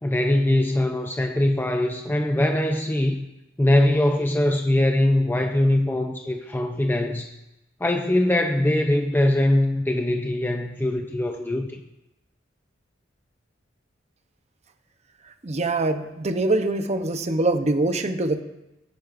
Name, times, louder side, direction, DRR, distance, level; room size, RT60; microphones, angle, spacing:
voice 1, 0.0-3.3 3.6-7.3 7.8-11.8, left 1 dB, 10° left, 3 dB, 0.6 m, -22 dB
voice 2, 15.4-18.4, right 2 dB, 35° right, 8 dB, 0.8 m, -24 dB
19.0 x 10.5 x 2.6 m, 0.95 s
head